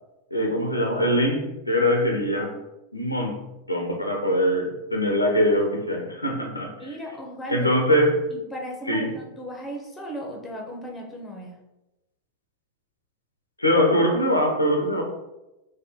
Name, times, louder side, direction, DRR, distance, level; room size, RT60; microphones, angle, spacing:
voice 1, 0.3-2.6 2.9-6.7 7.5-8.3 8.9-9.1 13.6-15.0, equal, 85° left, 2 dB, 0.5 m, -22 dB
voice 2, 6.8-7.7 8.3-11.6, right 1 dB, 10° left, 0 dB, 0.8 m, -36 dB
4.0 x 2.2 x 3.0 m, 0.96 s
figure-of-eight pair, 90°, 0 cm